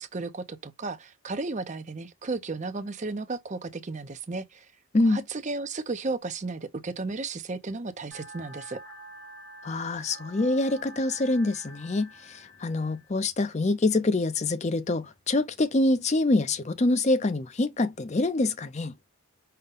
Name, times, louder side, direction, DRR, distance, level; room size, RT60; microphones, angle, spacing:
voice 1, 0.0-4.7 5.0-8.8, right 3 dB, 30° right, 0.5 m, -34 dB
sound 1, 8.1-13.1, right 1 dB, 70° left, 1.6 m, -47 dB
voice 2, 9.6-18.9, left 2 dB, 30° left, 0.5 m, -25 dB
5.6 x 2.2 x 3.7 m
head